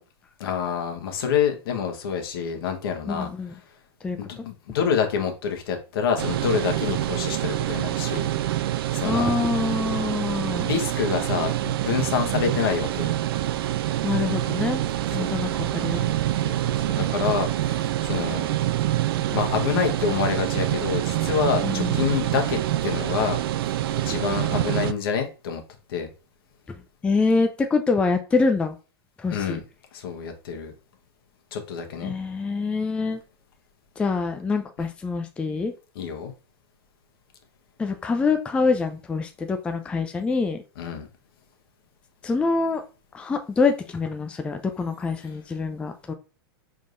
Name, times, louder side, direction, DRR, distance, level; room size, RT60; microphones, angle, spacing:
voice 1, 0.4-3.3 4.2-8.3 8.9-9.4 10.4-13.1 15.2-15.3 16.4-18.5 19.3-23.4 24.0-25.6 25.9-26.1 29.3-29.6 29.9-30.7 31.5-32.1 35.9-36.3 40.8-41.1, left 7 dB, 65° left, 4 dB, 1.2 m, -27 dB
voice 2, 3.1-3.5 4.0-4.4 9.0-10.7 14.0-14.8 15.1-16.1 21.6-22.1 26.7-28.8 29.2-29.6 32.0-33.2 34.0-35.7 37.8-40.6 42.2-42.8 43.1-46.1, left 4 dB, 10° left, 6 dB, 0.3 m, -25 dB
sound 1, 6.2-24.9, right 13 dB, 65° right, 0.4 m, -26 dB
4.7 x 3.6 x 2.5 m, 0.33 s
hypercardioid pair, 135°, 13 cm